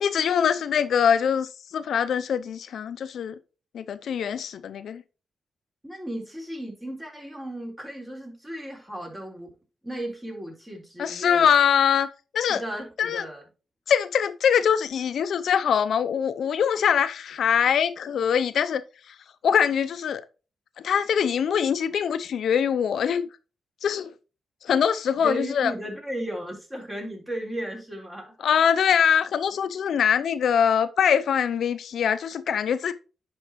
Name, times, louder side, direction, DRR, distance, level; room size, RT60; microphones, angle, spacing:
voice 1, 0.0-3.3 3.7-5.0 11.0-12.1 12.3-12.6 13.0-13.3 13.9-18.8 19.1-19.2 19.4-20.2 20.8-23.3 23.8-24.1 24.6-25.7 28.4-32.9, left 8 dB, 75° left, 0.5 m, -23 dB
voice 2, 5.8-9.5 9.8-11.5 12.5-13.4 25.2-28.5, right 1 dB, 15° right, 3.9 m, -35 dB
10.5 x 5.1 x 3.0 m
cardioid pair, 80°, 0 cm